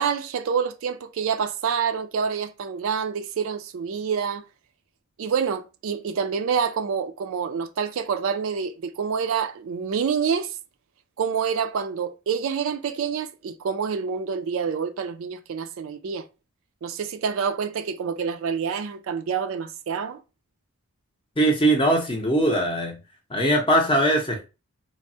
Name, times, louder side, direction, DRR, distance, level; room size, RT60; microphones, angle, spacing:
voice 1, 0.0-4.4 5.2-10.6 11.2-16.3 16.8-20.2, right 6 dB, 65° right, 0.3 m, -27 dB
voice 2, 21.4-23.0 23.3-24.5, right 1 dB, 25° left, 0.6 m, -21 dB
3.3 x 2.0 x 2.6 m
head